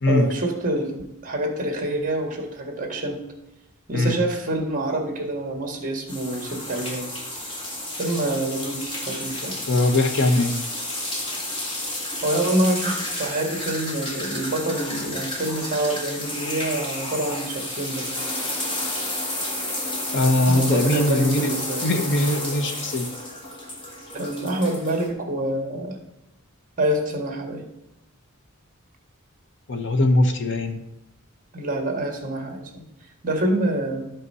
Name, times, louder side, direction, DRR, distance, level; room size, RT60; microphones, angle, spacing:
voice 1, 0.1-3.2 3.9-7.5 8.0-9.6 12.2-18.2 20.5-21.9 24.1-26.0 26.8-27.6 31.5-32.8 33.2-34.0, right 1 dB, 40° right, 3 dB, 1.8 m, -26 dB
sound 1, 6.1-25.1, left 1 dB, 25° left, 1.7 m, -31 dB
voice 2, 9.7-10.5 20.1-21.5 21.8-23.1 29.7-30.8, left 1 dB, 55° left, 7 dB, 1.0 m, -21 dB
12.0 x 5.5 x 5.5 m, 0.92 s
head